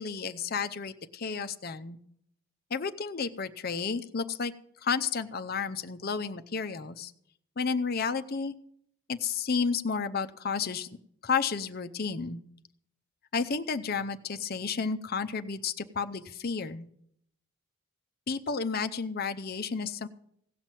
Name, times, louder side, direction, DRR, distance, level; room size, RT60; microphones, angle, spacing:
voice 1, 0.0-2.0 2.7-4.5 4.8-7.1 7.6-8.5 9.1-10.9 11.2-12.4 13.3-16.9 18.3-20.1, left 5 dB, 45° left, 9 dB, 0.6 m, -31 dB
16.5 x 5.9 x 9.0 m, 0.72 s
head